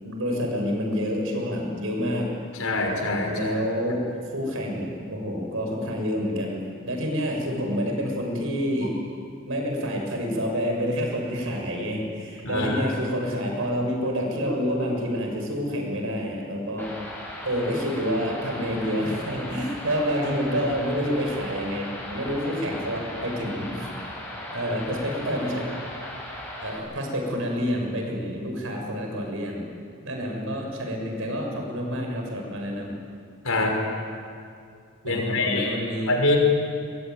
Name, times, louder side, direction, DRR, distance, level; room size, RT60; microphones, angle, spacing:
voice 1, 0.0-2.3 3.3-9.0 9.4-16.9 17.4-23.9 24.5-25.7 26.6-29.7 30.0-32.9 35.0-36.1, equal, 65° right, 2 dB, 6.8 m, -28 dB
voice 2, 2.6-3.5 12.4-12.9 33.4-33.8 35.0-35.7 36.1-36.4, left 2 dB, 70° left, 1 dB, 6.0 m, -24 dB
sound 1, 16.8-26.8, left 1 dB, 10° left, 6.6 m, -37 dB
24.5 x 22.5 x 9.4 m, 2.4 s
head